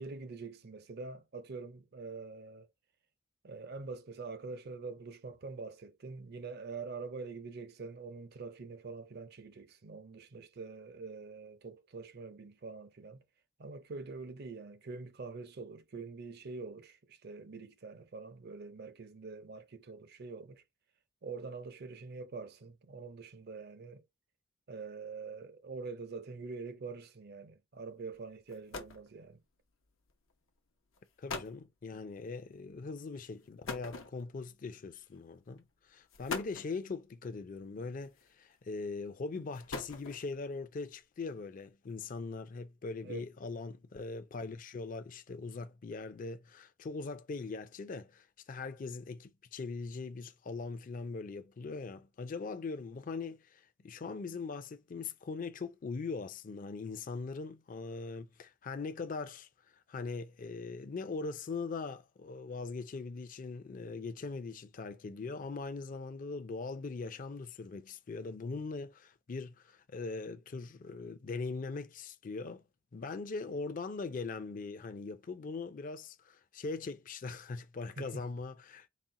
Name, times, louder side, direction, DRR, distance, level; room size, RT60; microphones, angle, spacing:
voice 1, 0.0-2.7 3.4-13.2 13.6-20.6 21.2-24.0 24.7-29.4 43.0-43.2 78.0-78.2, right 4 dB, 55° right, 0.6 m, -45 dB
sound 1, 28.1-28.2 28.5-29.1 30.1-30.3 30.9-31.0 31.3-31.6 33.7-34.5 35.5-35.6 36.1-36.8 38.0-38.5 39.4-40.4, left 4 dB, 85° left, 0.7 m, -42 dB
voice 2, 31.2-59.5 59.9-72.6 72.9-78.9, left 4 dB, 45° left, 0.4 m, -41 dB
4.2 x 2.1 x 3.7 m
head